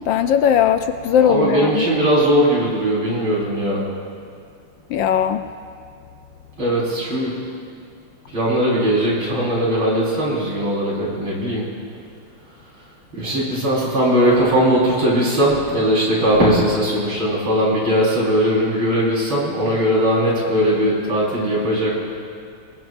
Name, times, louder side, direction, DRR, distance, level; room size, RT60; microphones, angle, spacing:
voice 1, 0.1-1.8 4.9-5.5, left 9 dB, 75° left, 8 dB, 1.2 m, -18 dB
voice 2, 1.2-3.8 6.6-7.4 8.3-11.7 13.1-21.9, equal, 70° right, -5 dB, 5.6 m, -19 dB
25.0 x 20.0 x 2.6 m, 2.2 s
omnidirectional pair, 2.3 m